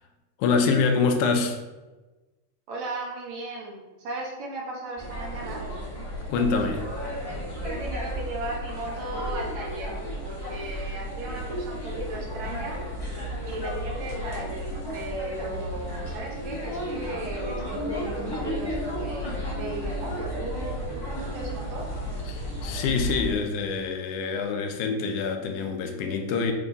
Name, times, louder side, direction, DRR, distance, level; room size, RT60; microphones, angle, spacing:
voice 1, 0.4-1.6 6.3-6.9 22.3-26.5, left 4 dB, 80° left, 5 dB, 2.1 m, -25 dB
voice 2, 2.7-5.7 7.6-10.0 10.2-12.8 13.5-21.9, right 2 dB, 70° right, -2 dB, 2.4 m, -36 dB
sound 1, 5.0-23.3, equal, 10° left, 1.2 m, -33 dB
6.6 x 3.7 x 4.0 m, 1.1 s
omnidirectional pair, 3.5 m